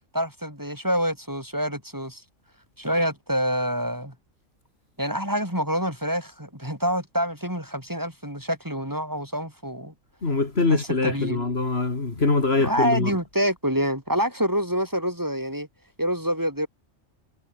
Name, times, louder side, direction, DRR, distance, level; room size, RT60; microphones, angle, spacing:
voice 1, 0.1-2.2 2.8-4.1 5.0-9.9 10.7-11.4 12.6-15.7 16.0-16.7, equal, 15° right, 5.9 m, -27 dB
voice 2, 10.2-13.2, left 3 dB, 50° left, 2.7 m, -23 dB
omnidirectional pair, 1.3 m